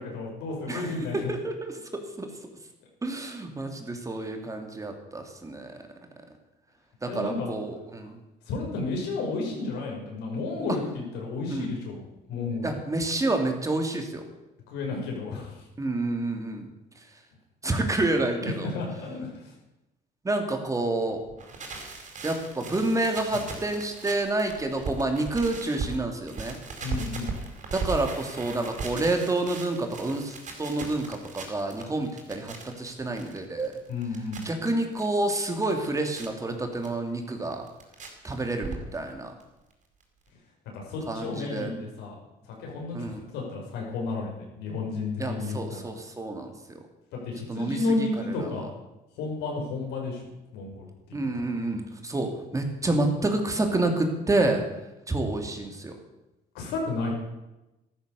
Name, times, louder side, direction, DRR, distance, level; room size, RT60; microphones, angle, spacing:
voice 1, 0.0-1.3 7.0-7.5 8.5-12.0 12.3-12.7 14.7-15.5 18.4-19.5 23.3-23.4 26.8-27.3 33.9-34.4 40.7-42.2 42.5-45.9 47.1-48.7 49.2-50.2 50.5-50.9 51.3-51.5 56.5-57.1, left 3 dB, 90° left, -1 dB, 6.0 m, -32 dB
voice 2, 0.7-2.3 3.0-5.7 7.0-8.2 11.5-11.7 12.6-14.2 15.8-16.7 17.6-18.7 20.2-21.2 22.2-26.6 27.7-33.7 34.4-37.7 38.2-39.3 41.1-41.7 42.9-43.3 45.2-46.8 47.5-48.7 51.1-54.6 55.1-56.0, right 2 dB, 20° right, 4 dB, 2.7 m, -29 dB
sound 1, 21.3-26.0 26.3-35.1 35.4-36.3 36.8-36.9 37.3-38.1 38.3-39.1 39.4-39.5 39.7-39.8 40.0-40.1, right 4 dB, 45° right, 4.6 m, -38 dB
13.5 x 13.5 x 7.0 m, 0.97 s
cardioid pair, 110°, 17 cm